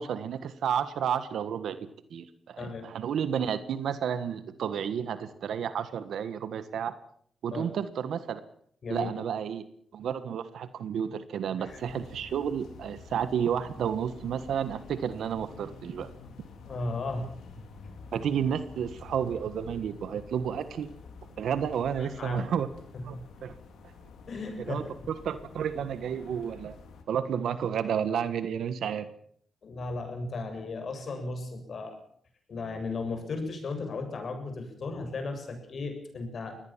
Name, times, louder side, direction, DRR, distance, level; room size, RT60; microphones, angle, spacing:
voice 1, 0.0-1.8 2.1-6.9 7.4-8.4 8.9-9.6 9.9-16.1 18.1-20.9 21.4-22.7 23.0-23.2 23.4-23.5 24.7-26.8 27.1-29.1, right 8 dB, 85° right, 12 dB, 1.5 m, -31 dB
voice 2, 2.6-2.9 7.5-7.7 8.8-9.1 11.6-11.7 16.7-17.3 22.0-22.5 22.9-23.2 24.3-25.1 29.6-32.0 32.5-36.5, left 3 dB, 60° left, 6 dB, 7.4 m, -35 dB
sound 1, 11.7-27.0, left 4 dB, 90° left, 4.2 m, -49 dB
23.5 x 18.5 x 7.4 m, 0.63 s
cardioid pair, 75°, 0 cm